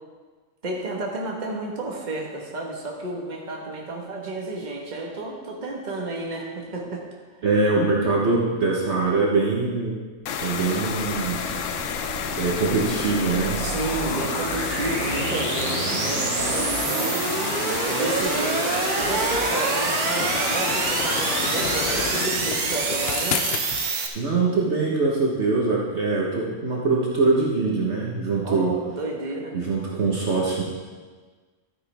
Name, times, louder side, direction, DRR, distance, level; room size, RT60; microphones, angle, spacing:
voice 1, 0.6-7.0 13.6-17.2 17.9-18.7 19.0-23.5 28.4-29.6, right 2 dB, 30° right, -1 dB, 1.5 m, -31 dB
voice 2, 7.4-10.0 10.4-11.5 12.4-13.6 24.1-28.8 29.5-30.6, right 3 dB, 50° right, -4 dB, 1.5 m, -23 dB
sound 1, 10.3-22.3, left 7 dB, 65° left, 0.9 m, -30 dB
sound 2, 10.3-24.1, right 5 dB, 75° right, 1.4 m, -27 dB
sound 3, 13.5-23.9, left 9 dB, 80° left, 0.5 m, -35 dB
12.5 x 9.4 x 3.5 m, 1.4 s
omnidirectional pair, 1.6 m